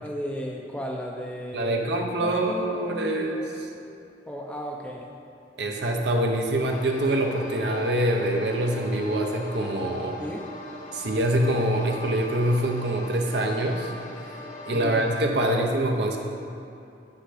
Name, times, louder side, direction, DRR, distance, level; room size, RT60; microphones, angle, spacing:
voice 1, 0.0-3.5 4.3-5.1 10.2-10.4 14.7-15.7, equal, 5° left, -1 dB, 0.5 m, -35 dB
voice 2, 1.5-3.4 5.6-10.2 10.9-13.9 14.7-16.2, right 1 dB, 65° right, 1 dB, 0.7 m, -25 dB
sound 1, 6.6-15.2, left 1 dB, 40° left, 0.9 m, -41 dB
8.7 x 5.6 x 4.9 m, 2.7 s
head